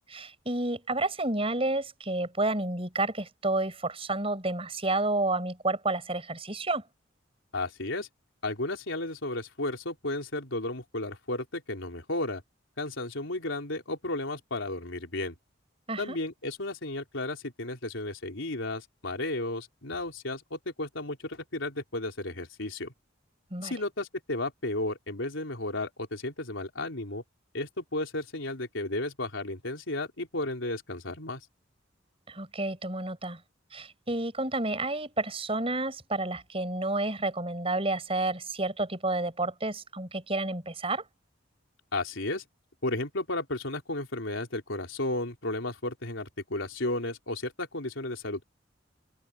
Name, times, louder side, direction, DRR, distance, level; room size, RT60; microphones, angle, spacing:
voice 1, 0.1-6.8 15.9-16.2 23.5-23.7 32.3-33.4 33.7-41.0, right 2 dB, 30° right, 6.8 m, -30 dB
voice 2, 7.5-8.1 8.4-12.4 12.8-15.4 16.0-22.9 23.6-27.2 27.5-31.5 41.9-42.4 42.8-48.4, left 2 dB, 85° left, 3.8 m, -33 dB
head